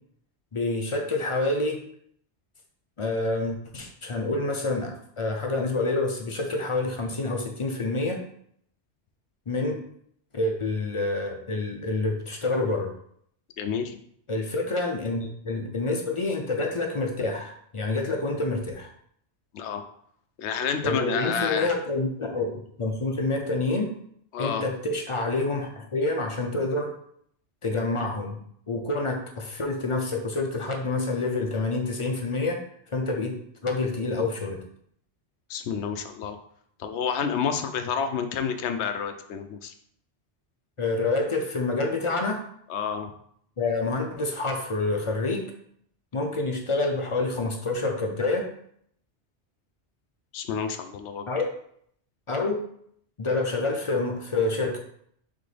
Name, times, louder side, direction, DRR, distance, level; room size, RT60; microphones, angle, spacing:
voice 1, 0.5-1.8 3.0-8.2 9.5-9.8 10.3-12.9 14.3-18.9 20.8-23.9 24.4-26.9 27.6-28.4 28.7-32.6 32.9-33.3 33.6-34.6 40.8-42.4 43.6-45.5 46.1-48.5 51.3-51.5 52.3-52.6 53.2-54.8, left 2 dB, 40° left, 2 dB, 0.5 m, -27 dB
voice 2, 13.6-14.0 19.5-19.8 20.4-21.7 24.3-24.6 35.5-36.4 36.8-39.7 42.7-43.1 50.3-51.3, left 7 dB, 85° left, 8 dB, 0.9 m, -29 dB
4.1 x 3.6 x 3.3 m, 0.67 s
omnidirectional pair, 1.1 m